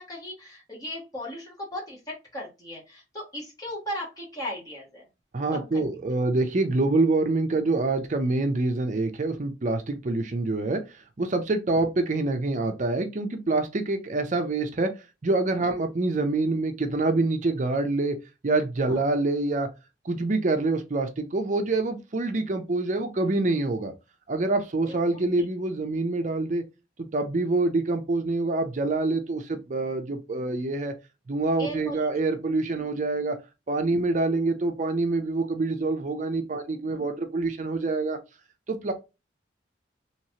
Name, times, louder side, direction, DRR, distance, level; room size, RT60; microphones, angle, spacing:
voice 1, 0.0-5.1 5.5-5.8 18.9-19.0 24.9-25.0 25.4-25.5 31.6-32.1 32.7-32.9 36.5-37.1, equal, 20° left, 1.3 m, -37 dB
voice 2, 5.3-10.8 11.2-14.9 15.2-18.2 18.4-19.7 20.0-23.9 24.3-26.6 27.0-30.9 31.3-33.4 33.7-38.2 38.7-38.9, right 2 dB, 40° right, 0.5 m, -26 dB
3.1 x 3.0 x 2.8 m
head